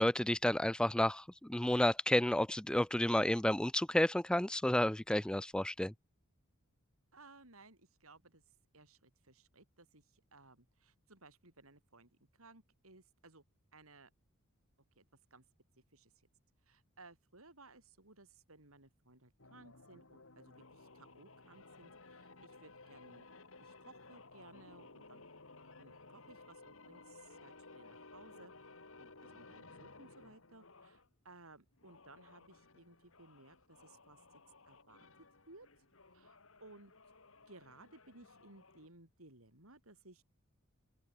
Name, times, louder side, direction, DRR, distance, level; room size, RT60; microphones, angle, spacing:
voice 1, 0.0-5.9, left 1 dB, 5° left, 0.4 m, -31 dB
voice 2, 7.1-8.4 8.7-13.4 13.7-14.1 15.0-15.1 15.3-15.4 15.9-16.1 16.7-23.3 23.6-25.2 25.8-28.5 29.0-34.2 34.7-35.1 35.5-35.7 36.1-36.9 37.5-40.2, right 2 dB, 80° right, 6.3 m, -60 dB
sound 1, 19.4-31.1 31.7-38.9, left 3 dB, 65° left, 2.8 m, -58 dB
open air
head